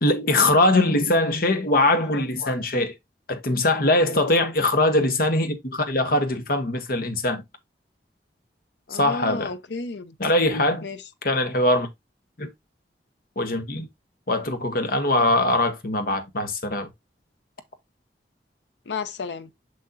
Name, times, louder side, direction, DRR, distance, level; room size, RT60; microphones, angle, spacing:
voice 1, 0.0-3.0 3.3-7.4 8.9-9.5 10.2-10.9 11.2-11.9 12.4-12.5 13.4-13.9 14.3-16.9, left 2 dB, 55° left, 1.1 m, -22 dB
voice 2, 2.1-2.6 8.9-10.1 10.8-11.0 18.9-19.5, left 4 dB, 75° left, 0.7 m, -33 dB
6.4 x 6.3 x 2.6 m
head